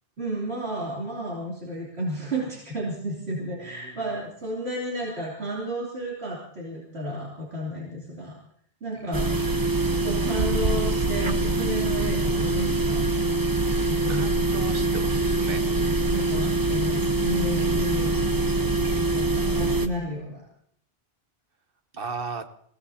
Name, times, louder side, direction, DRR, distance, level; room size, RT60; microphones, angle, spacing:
voice 1, 0.2-8.3 8.8-9.5 10.0-13.1 13.8-14.3 16.1-18.3 19.1-20.4, equal, 80° right, -5 dB, 3.4 m, -32 dB
voice 2, 3.6-4.0 9.0-9.2 13.6-15.6 21.9-22.4, right 4 dB, 60° right, 8 dB, 1.3 m, -37 dB
sound 1, 9.1-19.9, right 2 dB, 20° right, 0.8 m, -24 dB
27.0 x 17.0 x 2.8 m, 0.66 s
omnidirectional pair, 1.1 m